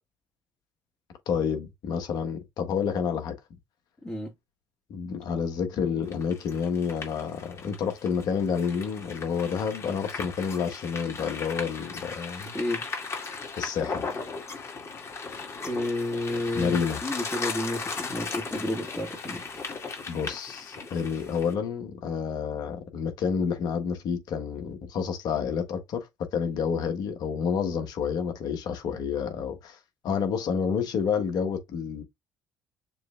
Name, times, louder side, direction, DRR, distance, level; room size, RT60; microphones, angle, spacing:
voice 1, 1.3-3.3 4.9-12.5 13.6-14.1 16.5-17.0 20.1-29.8 30.0-32.0, left 6 dB, 65° left, 1.3 m, -29 dB
voice 2, 4.0-4.3 12.5-12.9 15.6-19.6, left 1 dB, 20° left, 2.1 m, -31 dB
sound 1, 6.1-21.5, left 4 dB, 40° left, 2.2 m, -37 dB
6.8 x 3.2 x 2.4 m
supercardioid pair, 65°, 7 cm